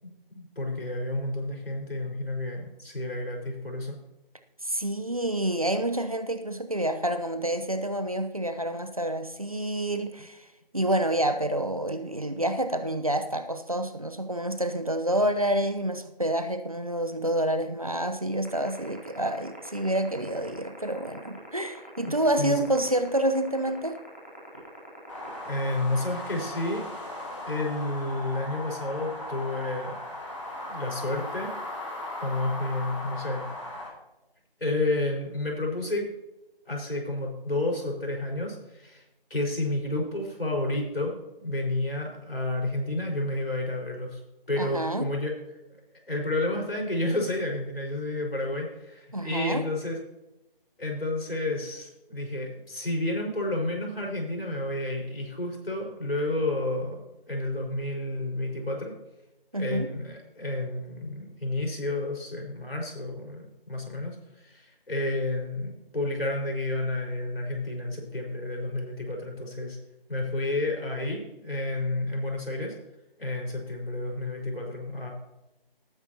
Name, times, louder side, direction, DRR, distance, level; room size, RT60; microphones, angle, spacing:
voice 1, 0.0-4.0 22.0-22.6 25.4-26.8 27.4-30.0 30.7-31.5 32.2-33.5 34.6-36.1 36.7-39.0 39.3-44.2 44.5-45.4 46.1-50.0 50.8-58.9 59.5-69.8 70.1-72.7 73.2-75.1, left 2 dB, 75° left, 0 dB, 5.0 m, -30 dB
voice 2, 4.6-10.4 10.7-24.0 44.6-45.1 49.1-49.6 59.5-59.9, right 1 dB, 40° right, 8 dB, 0.8 m, -28 dB
sound 1, 18.4-26.0, equal, 15° right, 1.3 m, -46 dB
sound 2, 25.1-33.9, left 1 dB, 30° left, 3.3 m, -37 dB
18.5 x 9.5 x 2.9 m, 0.94 s
figure-of-eight pair, 175°, 29 cm